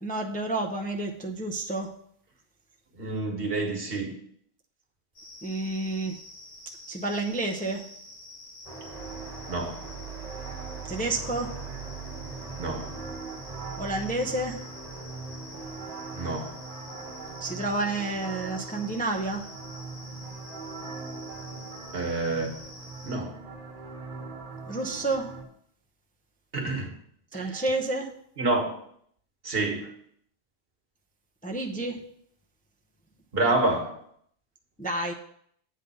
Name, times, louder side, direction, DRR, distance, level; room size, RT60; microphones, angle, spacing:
voice 1, 0.0-1.9 5.4-6.2 6.9-7.8 10.9-11.5 13.8-14.6 17.4-19.4 24.7-25.3 27.3-28.1 31.4-32.0 34.8-35.1, right 2 dB, 10° left, 2 dB, 0.6 m, -30 dB
voice 2, 2.9-4.1 9.5-9.8 12.6-12.9 16.1-16.6 21.9-22.6 23.0-23.4 26.5-26.9 27.3-27.6 28.4-28.7 29.4-29.9 33.3-34.0, right 2 dB, 60° right, 2 dB, 1.6 m, -28 dB
sound 1, 5.2-23.2, left 1 dB, 60° left, 1.8 m, -48 dB
sound 2, 8.7-25.4, right 4 dB, 40° right, 1.4 m, -40 dB
8.3 x 3.9 x 6.8 m, 0.67 s
omnidirectional pair, 1.1 m